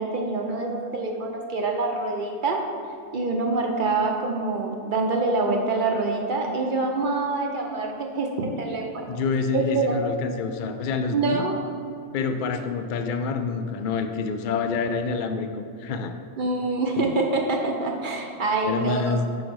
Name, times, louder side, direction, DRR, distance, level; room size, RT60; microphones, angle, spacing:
voice 1, 0.0-2.6 3.1-9.2 9.5-10.0 11.1-11.6 16.4-19.2, right 3 dB, 50° right, 2 dB, 0.7 m, -26 dB
voice 2, 9.1-11.4 12.1-16.1 18.6-19.3, left 4 dB, 70° left, 7 dB, 0.4 m, -27 dB
5.0 x 4.7 x 6.1 m, 2.3 s
omnidirectional pair, 1.4 m